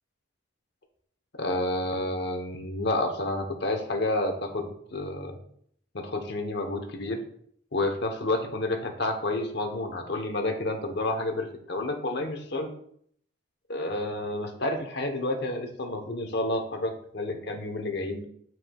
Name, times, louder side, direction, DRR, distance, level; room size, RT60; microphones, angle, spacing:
voice 1, 1.4-5.4 5.9-7.2 7.7-12.7 13.7-18.2, left 2 dB, 55° left, 4 dB, 1.0 m, -30 dB
9.1 x 4.7 x 2.3 m, 0.66 s
head